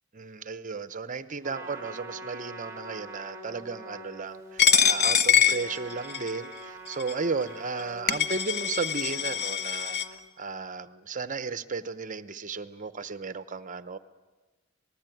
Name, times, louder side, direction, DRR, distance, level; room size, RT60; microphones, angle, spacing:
voice 1, 0.1-10.0 10.4-14.0, right 4 dB, 40° right, 13 dB, 0.9 m, -34 dB
Trumpet, 1.4-10.2, right 2 dB, 15° right, 2.3 m, -44 dB
Coin (dropping), 4.6-6.4 7.0-7.1 7.8-7.9 8.1-10.1, left 8 dB, 55° left, 1.0 m, -24 dB
26.0 x 20.0 x 9.2 m, 1.3 s
head